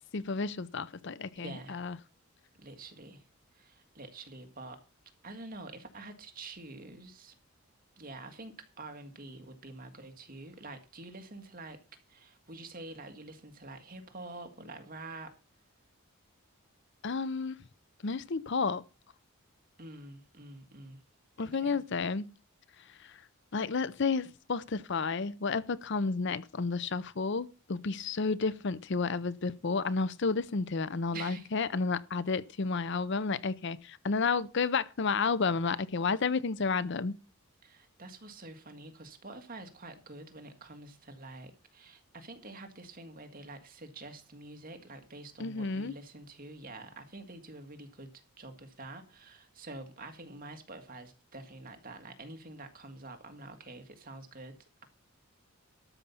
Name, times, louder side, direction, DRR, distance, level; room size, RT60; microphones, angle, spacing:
voice 1, 0.1-2.0 17.0-17.6 18.0-18.8 21.4-22.3 22.9-23.2 23.5-37.2 45.4-45.9, left 4 dB, 55° left, 0.6 m, -31 dB
voice 2, 1.4-1.8 2.6-3.3 3.5-4.8 5.2-7.4 8.0-11.8 12.1-15.4 19.8-21.0 21.4-21.8 31.1-31.5 37.6-54.5, right 2 dB, 40° right, 1.8 m, -47 dB
13.0 x 5.4 x 7.0 m
head